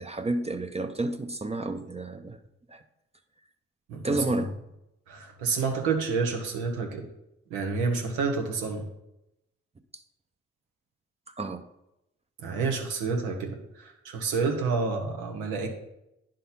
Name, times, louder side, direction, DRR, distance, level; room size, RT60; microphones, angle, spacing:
voice 1, 0.0-2.4 2.7-2.8 4.0-4.5 11.3-11.6, right 2 dB, 20° right, 7 dB, 0.6 m, -30 dB
voice 2, 3.9-4.2 5.1-7.1 7.5-8.9 12.4-15.7, right 4 dB, 90° right, 3 dB, 1.0 m, -29 dB
9.9 x 3.8 x 4.1 m, 0.87 s
hypercardioid pair, 45°, 29 cm